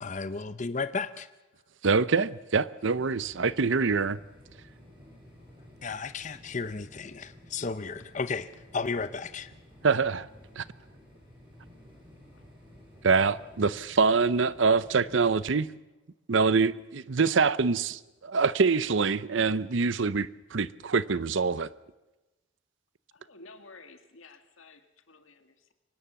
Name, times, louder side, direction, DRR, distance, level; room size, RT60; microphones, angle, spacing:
voice 1, 0.0-1.3 5.8-9.5, left 4 dB, 35° left, 0.6 m, -34 dB
voice 2, 1.8-4.2 9.8-10.3 10.6-10.7 13.0-15.7 16.3-21.7, right 4 dB, 65° right, 0.7 m, -25 dB
sound 1, 2.9-15.4, left 1 dB, 25° right, 6.8 m, -53 dB
voice 3, 23.1-25.7, left 3 dB, 85° left, 2.1 m, -53 dB
24.0 x 19.0 x 7.0 m
head